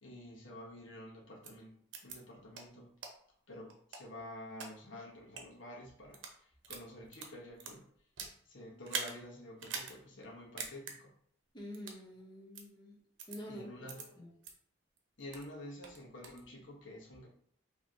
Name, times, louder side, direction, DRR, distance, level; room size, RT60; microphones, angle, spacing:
voice 1, 0.0-2.9 3.5-7.8 8.4-11.1 13.5-14.2 15.2-17.3, left 1 dB, 80° left, -2 dB, 1.3 m, -49 dB
sound 1, 1.4-1.5 1.9-2.2 2.5-2.6 3.0-3.1 3.7-4.7 5.2-5.4 6.0-6.4 6.6-8.4 8.8-9.1 9.6-9.9 10.2-10.3 10.6-10.9 11.7-12.0 12.5-12.6 13.2-13.4 13.9-14.0 14.4-14.5 15.0-15.5 15.8-16.4, right 5 dB, 70° right, 0.8 m, -43 dB
voice 2, 11.5-13.0 13.3-13.9 14.2-14.3, equal, 25° left, -5 dB, 1.1 m, -47 dB
5.0 x 3.1 x 2.9 m, 0.64 s
head